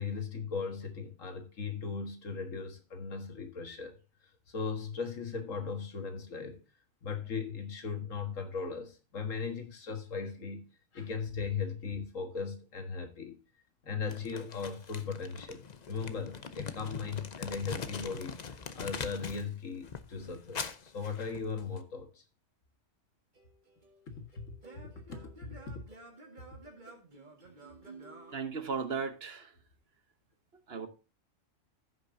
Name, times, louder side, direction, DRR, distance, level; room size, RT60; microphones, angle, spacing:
voice 1, 0.0-4.0 4.5-6.6 7.0-10.7 10.9-13.4 13.8-22.2 24.1-24.5 25.1-25.8, left 5 dB, 85° left, 2.0 m, -38 dB
Crumpling crinkling, 14.1-19.5 19.8-21.8, left 6 dB, 40° left, 0.7 m, -42 dB
Singing / Plucked string instrument, 23.4-29.2, right 2 dB, 35° right, 2.1 m, -53 dB
voice 2, 28.3-29.5 30.7-30.9, right 5 dB, 55° right, 1.2 m, -36 dB
15.5 x 6.3 x 2.7 m
omnidirectional pair, 1.3 m